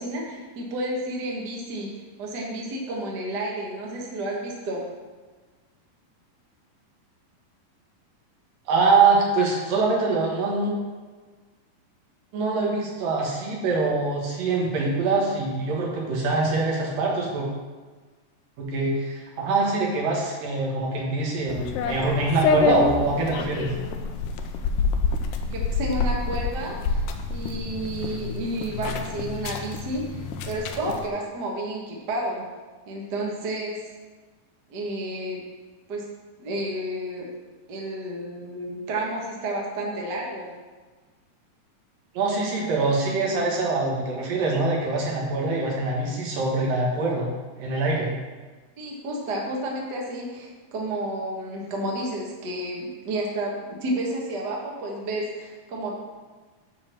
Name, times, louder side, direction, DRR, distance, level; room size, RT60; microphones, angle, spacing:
voice 1, 0.0-1.9 2.2-4.8 25.5-27.0 27.3-32.5 32.9-33.8 34.7-35.4 35.9-36.0 36.4-37.3 37.7-40.5 48.8-56.0, right 1 dB, 50° right, -2 dB, 1.3 m, -31 dB
voice 2, 8.7-10.7 12.3-17.5 18.6-23.7 42.1-47.3 47.6-48.1, right 3 dB, 75° right, -2 dB, 3.2 m, -24 dB
sound 1, 21.5-31.1, left 4 dB, 80° left, 2.0 m, -27 dB
9.6 x 4.2 x 6.3 m, 1.4 s
omnidirectional pair, 4.0 m